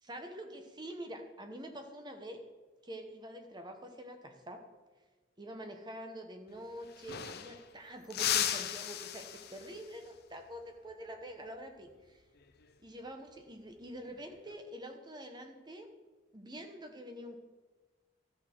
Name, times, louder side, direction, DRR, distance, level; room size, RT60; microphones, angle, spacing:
voice 1, 0.0-2.4 2.8-4.6 5.4-12.2 12.8-15.9 16.3-17.4, equal, 20° right, 5 dB, 0.9 m, -46 dB
sound 1, 6.5-6.6 6.8-7.7 8.1-9.9 12.4-12.7 14.1-14.5, left 10 dB, 55° left, 0.6 m, -36 dB
13.0 x 6.3 x 4.5 m, 1.3 s
head